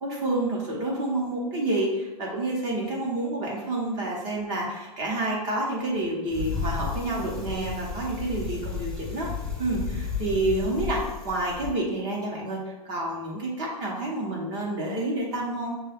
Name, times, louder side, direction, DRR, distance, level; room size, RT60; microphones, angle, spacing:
voice 1, 0.0-9.3 9.6-15.7, right 2 dB, 20° right, -2 dB, 0.8 m, -29 dB
Bicycle, 6.3-11.7, left 5 dB, 5° left, 0.4 m, -33 dB
6.5 x 2.2 x 3.4 m, 1.1 s
hypercardioid pair, 165°, 21 cm